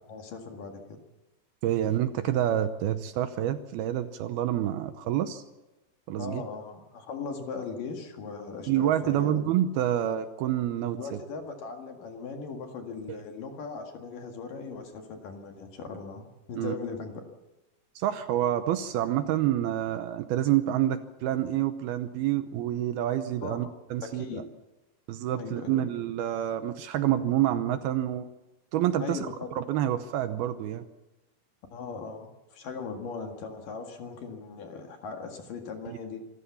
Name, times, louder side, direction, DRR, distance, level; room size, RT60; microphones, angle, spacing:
voice 1, 0.1-1.0 6.2-9.4 11.0-17.2 23.4-23.7 24.0-24.4 25.3-25.7 29.0-29.5 31.7-36.2, left 5 dB, 55° left, 4 dB, 3.3 m, -39 dB
voice 2, 1.6-5.4 6.1-6.4 8.7-11.2 13.1-13.2 16.6-16.8 18.0-24.4 25.1-28.3 28.7-29.2 29.6-30.8 35.9-36.0, right 12 dB, 75° right, 10 dB, 2.5 m, -28 dB
26.0 x 14.0 x 7.2 m, 1.1 s
omnidirectional pair, 4.9 m